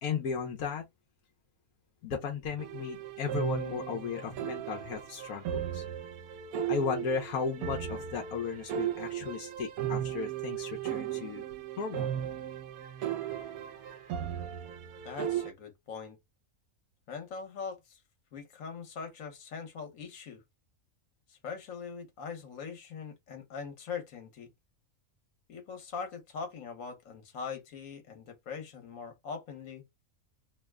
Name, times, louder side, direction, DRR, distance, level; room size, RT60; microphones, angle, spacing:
voice 1, 0.0-0.8 2.0-5.8 6.7-11.4 11.8-12.1 13.0-14.0, left 5 dB, 85° left, 1.2 m, -35 dB
sound 1, 2.6-15.5, right 10 dB, 80° right, 1.1 m, -36 dB
voice 2, 15.0-16.2 17.1-18.0 18.3-20.4 21.3-24.5 25.5-29.8, left 6 dB, 65° left, 1.4 m, -42 dB
2.9 x 2.1 x 3.4 m
omnidirectional pair, 1.5 m